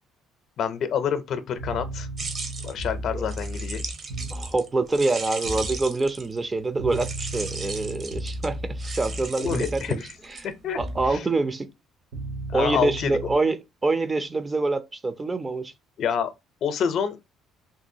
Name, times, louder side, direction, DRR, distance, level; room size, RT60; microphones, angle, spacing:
voice 1, 0.6-2.1 2.6-4.0 9.4-10.1 10.4-10.8 11.1-11.2 12.5-13.2 16.0-16.3 16.6-17.2, left 7 dB, 60° left, 0.6 m, -27 dB
sound 1, 1.6-4.6 5.4-5.8 6.8-10.0 10.8-11.2 12.1-13.3, right 1 dB, 85° right, 1.9 m, -34 dB
sound 2, 2.2-6.4 6.9-10.9, right 3 dB, 45° right, 0.8 m, -37 dB
voice 2, 4.3-10.0 10.3-10.4 10.8-11.7 12.5-13.6 13.8-15.7, right 3 dB, 25° right, 0.5 m, -26 dB
3.7 x 2.3 x 2.7 m
supercardioid pair, 85°, 0 cm